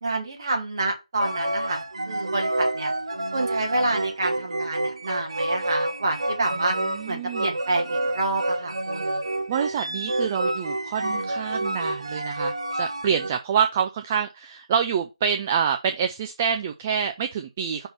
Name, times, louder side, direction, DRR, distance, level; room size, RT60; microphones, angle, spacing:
voice 1, 0.0-2.9 3.3-6.8 7.1-9.2, right 2 dB, 35° right, 2.0 m, -28 dB
sound 1, 1.2-13.3, right 1 dB, 50° right, 0.9 m, -28 dB
voice 2, 6.6-7.5 9.5-17.9, right 7 dB, 15° right, 0.3 m, -27 dB
5.4 x 3.6 x 5.7 m
figure-of-eight pair, 155°, 4 cm